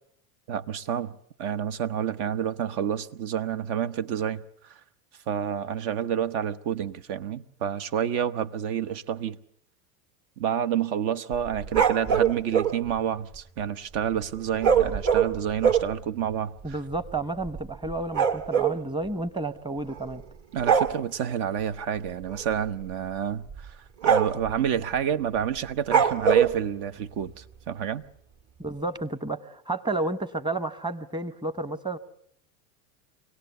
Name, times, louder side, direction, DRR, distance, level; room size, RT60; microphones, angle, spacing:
voice 1, 0.5-4.4 4.7-4.8 5.3-9.4 10.4-16.5 20.5-23.8 24.0-28.0, right 9 dB, 65° right, 1.1 m, -29 dB
sound 1, 11.3-12.7 14.6-15.9 16.6-16.7 16.9-17.1 17.4-18.8 19.9-20.2 20.6-20.9 22.3-22.5 22.9-23.0 23.5-23.7 24.0-24.5 25.9-26.5, right 7 dB, 40° right, 1.7 m, -22 dB
voice 2, 16.6-20.2 28.6-32.0, right 2 dB, 10° right, 1.0 m, -31 dB
24.5 x 17.5 x 8.1 m
hypercardioid pair, 100°, 44 cm